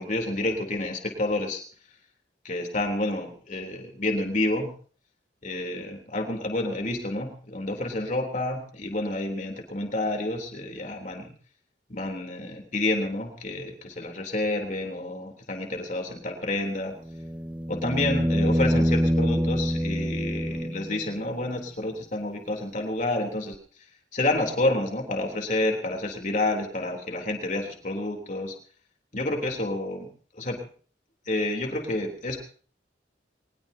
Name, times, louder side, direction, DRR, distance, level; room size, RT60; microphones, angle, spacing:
voice 1, 0.0-1.6 2.4-4.7 5.4-11.3 11.9-16.9 17.7-23.6 24.1-28.6 29.1-30.1 30.3-30.6 31.3-32.4, left 2 dB, 45° left, 3 dB, 3.4 m, -29 dB
sound 1, 17.0-21.1 23.5-23.6, equal, 10° right, 0.8 m, -25 dB
22.0 x 20.5 x 2.8 m, 0.43 s
head